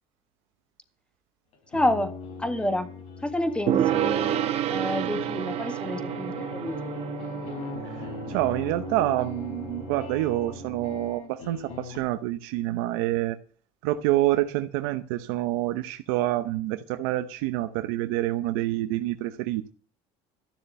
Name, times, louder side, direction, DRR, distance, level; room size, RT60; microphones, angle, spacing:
sound 1, 1.5-12.0, left 4 dB, 60° left, 4.4 m, -40 dB
voice 1, 1.7-2.1 2.4-2.9 3.2-4.4 4.7-7.0, left 1 dB, 10° left, 1.7 m, -29 dB
Gong, 3.7-11.1, right 11 dB, 50° right, 1.4 m, -30 dB
voice 2, 7.8-13.4 13.8-19.7, right 15 dB, 90° right, 0.9 m, -27 dB
13.5 x 7.0 x 9.0 m
cardioid pair, 115°, 13 cm